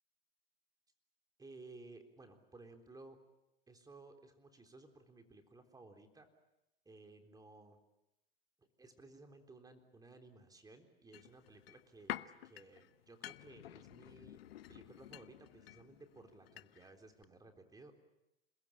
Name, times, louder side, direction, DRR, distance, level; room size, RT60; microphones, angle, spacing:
voice 1, 1.4-3.2 3.7-6.3 6.9-7.8 8.6-14.4 14.7-17.9, right 3 dB, 10° right, 6 dB, 3.7 m, -57 dB
sound 1, 11.1-17.0 17.2-17.3, left 14 dB, 75° left, 1.0 m, -50 dB
27.5 x 21.0 x 8.8 m, 0.93 s
hypercardioid pair, 110°, 30 cm